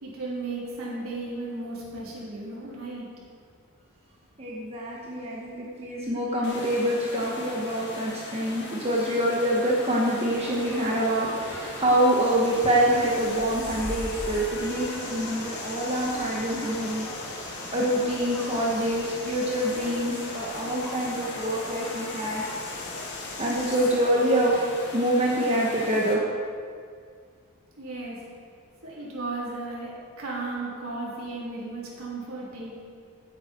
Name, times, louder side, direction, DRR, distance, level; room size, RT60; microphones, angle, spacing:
voice 1, 0.0-3.2 27.8-28.3 28.8-32.7, right 2 dB, 75° right, -5 dB, 3.7 m, -35 dB
voice 2, 4.4-17.1 17.4-22.4 23.4-24.6 24.9-26.2, right 1 dB, 30° right, -4 dB, 1.4 m, -26 dB
sound 1, 6.4-26.1, left 2 dB, 50° left, 1.8 m, -39 dB
sound 2, 10.3-23.1, equal, 10° left, 2.2 m, -43 dB
sound 3, 12.0-24.1, left 3 dB, 80° left, 2.1 m, -41 dB
15.5 x 9.0 x 4.6 m, 2.1 s
head